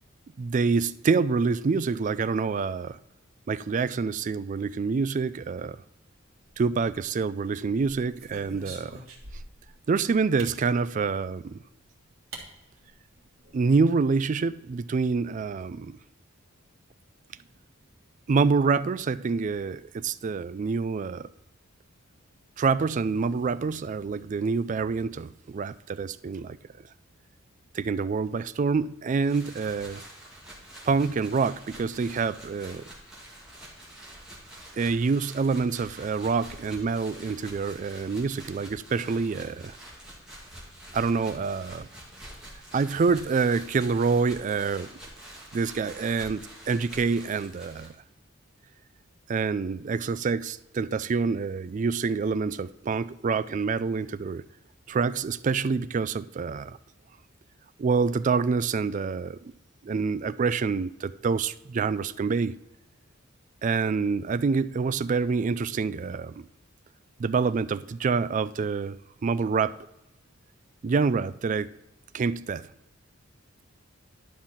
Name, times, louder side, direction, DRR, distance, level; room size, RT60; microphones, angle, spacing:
voice 1, 0.4-3.0 3.5-5.8 6.6-9.0 9.9-11.5 13.5-16.0 18.3-21.3 22.6-26.6 27.7-30.0 30.8-32.8 34.8-39.8 40.9-41.9 42.7-44.9 45.5-47.9 49.3-54.4 54.9-56.8 57.8-59.5 59.8-62.6 63.6-66.5 67.2-69.0 69.2-69.7 70.8-71.7 72.1-72.7, right 4 dB, 35° right, 0.3 m, -26 dB
sound 1, 6.5-7.2 7.7-9.7 10.4-10.6 11.7-11.8 12.3-12.5 12.8-12.9 13.2-13.6, right 2 dB, 65° right, 2.0 m, -44 dB
sound 2, 29.2-47.9, right 1 dB, 5° right, 2.6 m, -47 dB
11.0 x 5.6 x 4.3 m
head